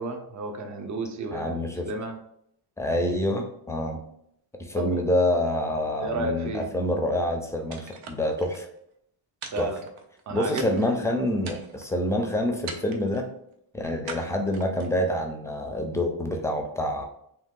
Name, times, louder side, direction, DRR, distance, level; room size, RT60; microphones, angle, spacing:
voice 1, 0.0-1.6 1.9-2.2 4.8-5.0 6.0-6.7 9.5-9.8 10.3-11.0, right 2 dB, 40° right, 5 dB, 0.6 m, -32 dB
voice 2, 1.3-1.9 2.8-4.0 4.6-8.7 9.6-9.7 10.3-13.3 13.7-17.0, left 1 dB, 5° left, 3 dB, 0.5 m, -27 dB
sound 1, 7.7-8.6 9.4-10.2 10.6-11.0 11.4-12.0 12.7-13.2 14.1-15.0, right 5 dB, 85° right, 0.6 m, -41 dB
2.8 x 2.3 x 3.6 m, 0.72 s
cardioid pair, 95°, 45 cm